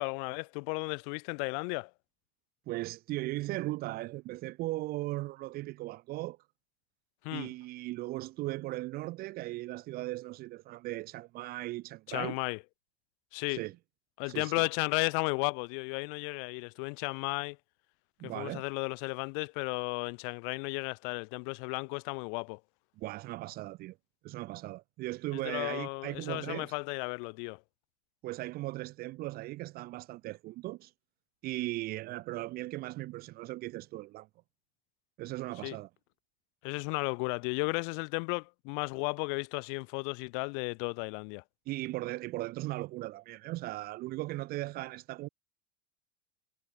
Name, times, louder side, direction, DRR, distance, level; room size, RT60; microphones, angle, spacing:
voice 1, 0.0-1.9 7.2-7.5 12.1-12.6 13.3-13.6 14.2-17.6 18.2-22.6 25.3-27.6 35.6-35.8 36.6-41.4, left 40 dB or more, 40° left, 1.4 m, -34 dB
voice 2, 2.7-6.4 7.3-12.4 13.5-13.7 14.3-14.6 18.2-18.6 23.0-24.0 24.2-26.7 28.2-30.9 31.4-34.3 35.2-35.9 41.7-45.3, right 18 dB, 25° right, 0.8 m, -38 dB
supercardioid pair, 180°, 38 cm